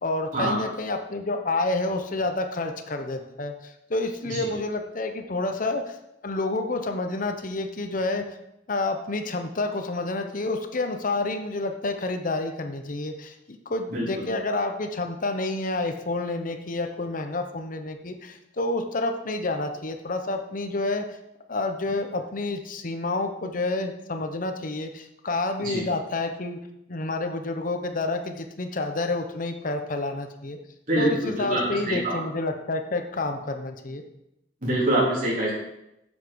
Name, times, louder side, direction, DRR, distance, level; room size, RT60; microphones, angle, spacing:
voice 1, 0.0-5.9 6.2-8.4 8.7-21.0 21.5-26.6 26.9-30.6 31.0-34.0, left 2 dB, 50° left, 6 dB, 1.0 m, -29 dB
voice 2, 30.9-32.2 34.6-35.5, right 1 dB, 50° right, -7 dB, 3.7 m, -25 dB
8.0 x 7.4 x 6.3 m, 0.85 s
head